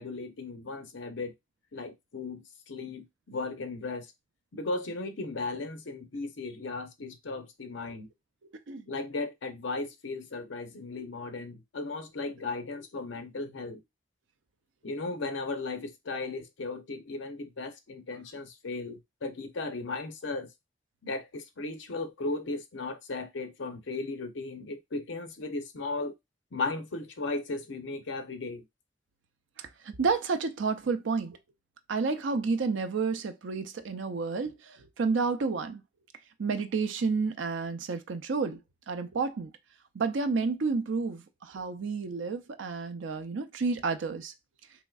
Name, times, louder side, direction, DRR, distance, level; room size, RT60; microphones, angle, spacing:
voice 1, 0.0-1.3 1.7-4.1 4.5-8.1 8.9-13.8 14.8-20.5 21.0-26.1 26.5-28.6, left 3 dB, 70° left, 0.6 m, -36 dB
voice 2, 29.6-31.4 31.9-35.8 36.4-38.6 38.9-39.5 39.9-44.3, right 4 dB, 75° right, 0.5 m, -30 dB
3.5 x 3.1 x 2.3 m
head